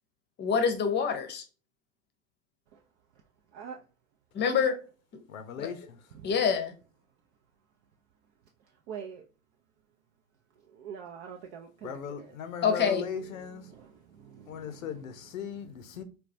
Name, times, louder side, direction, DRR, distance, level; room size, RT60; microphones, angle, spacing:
voice 1, 0.4-1.4 4.3-4.7 5.6-5.7 6.2-6.7 12.6-13.0, left 6 dB, 25° left, 0.7 m, -26 dB
voice 2, 3.5-3.8 6.1-6.3 8.9-9.2 10.7-12.4 12.7-12.8 13.3-15.1, right 7 dB, 55° right, 0.5 m, -45 dB
voice 3, 5.3-6.0 11.8-13.7 14.5-16.0, left 7 dB, 80° left, 0.6 m, -38 dB
3.8 x 2.2 x 2.5 m
hypercardioid pair, 90°, 40 cm